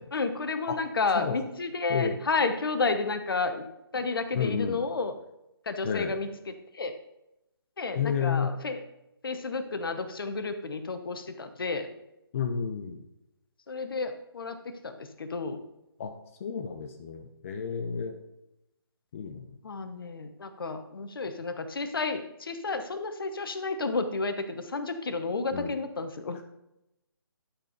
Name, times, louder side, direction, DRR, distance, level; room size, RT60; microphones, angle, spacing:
voice 1, 0.1-3.7 3.9-5.1 5.7-6.9 7.8-8.8 9.2-11.9 13.7-15.6 19.6-26.4, left 3 dB, 60° left, 9 dB, 1.0 m, -31 dB
voice 2, 4.3-4.8 5.8-6.1 8.0-8.5 12.3-13.0 16.0-16.1 16.4-18.1 19.1-19.6 25.5-25.7, left 6 dB, 30° left, 5 dB, 0.7 m, -31 dB
11.5 x 4.4 x 5.0 m, 0.88 s
figure-of-eight pair, 150°, 13 cm